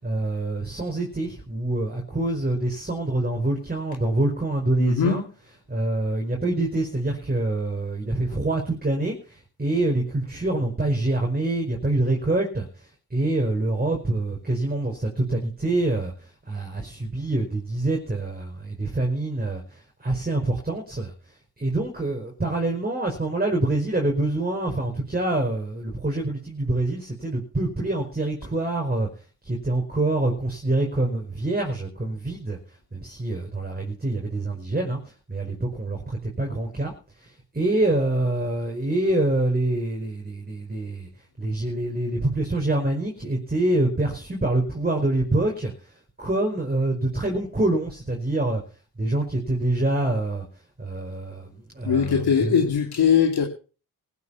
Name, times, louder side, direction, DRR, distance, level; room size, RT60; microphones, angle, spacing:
voice 1, 0.0-5.2 5.7-12.7 13.1-21.1 21.6-29.1 29.4-32.6 32.9-35.0 35.3-36.9 37.2-41.1 41.4-45.9 46.2-48.6 49.0-50.5 50.8-52.7, right 2 dB, 20° right, 1 dB, 5.2 m, -26 dB
voice 2, 4.8-5.3 51.8-53.5, left 7 dB, 65° left, 1 dB, 2.8 m, -21 dB
16.0 x 8.5 x 7.1 m, 0.37 s
supercardioid pair, 50°, 41 cm